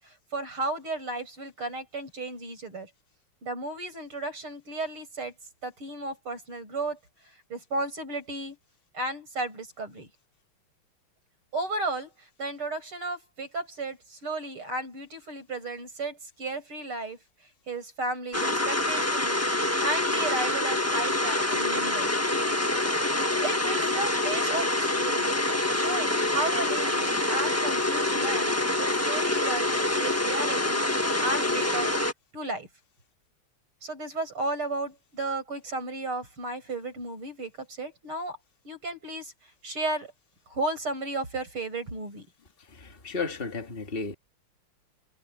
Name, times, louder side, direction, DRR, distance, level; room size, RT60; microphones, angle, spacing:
voice 1, 0.0-2.9 3.4-5.3 5.6-7.0 7.5-8.6 8.9-10.1 11.5-17.2 17.7-22.1 23.4-25.3 25.7-30.8 31.2-31.9 32.3-32.7 33.8-38.4 38.7-39.3 39.6-40.1 40.5-42.3, right 2 dB, 75° right, 8.7 m, -34 dB
sound 1, 18.3-32.1, left 1 dB, 10° left, 1.1 m, -26 dB
voice 2, 42.7-44.1, left 4 dB, 25° left, 2.2 m, -33 dB
omnidirectional pair, 2.4 m